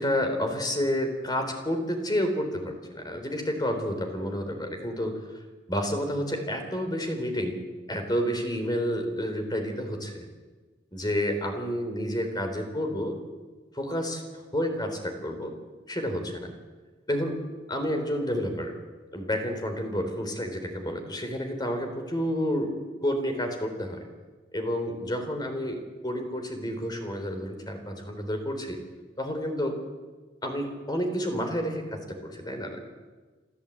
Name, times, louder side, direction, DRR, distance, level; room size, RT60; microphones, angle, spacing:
voice 1, 0.0-5.1 5.7-7.6 7.9-10.2 10.9-13.2 13.7-14.2 14.5-15.5 15.9-16.5 17.1-17.4 17.7-18.7 19.1-22.7 23.0-24.1 24.5-28.8 29.2-29.8 30.4-32.8, equal, 25° left, 5 dB, 3.8 m, -30 dB
28.5 x 13.0 x 8.5 m, 1.3 s
head